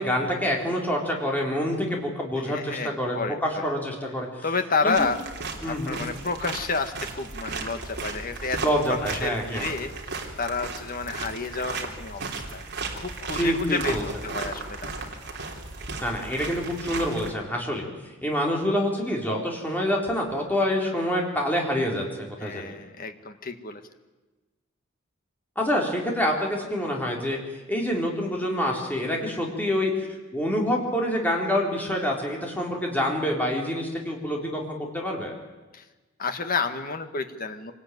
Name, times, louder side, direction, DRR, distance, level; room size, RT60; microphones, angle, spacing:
voice 1, 0.0-4.5 4.8-5.1 5.6-6.0 8.6-9.7 13.3-14.0 16.0-17.9 18.2-22.0 22.4-22.7 25.6-27.4 27.7-30.1 30.3-35.3, equal, 10° left, -1 dB, 4.1 m, -26 dB
voice 2, 2.4-3.7 4.4-5.2 5.6-12.6 13.0-14.0 14.2-14.9 22.4-23.8 35.7-35.8 36.2-37.7, left 4 dB, 45° left, 7 dB, 1.7 m, -30 dB
sound 1, 4.9-17.3, right 3 dB, 55° right, 3.4 m, -35 dB
25.0 x 19.0 x 9.4 m, 1.2 s
head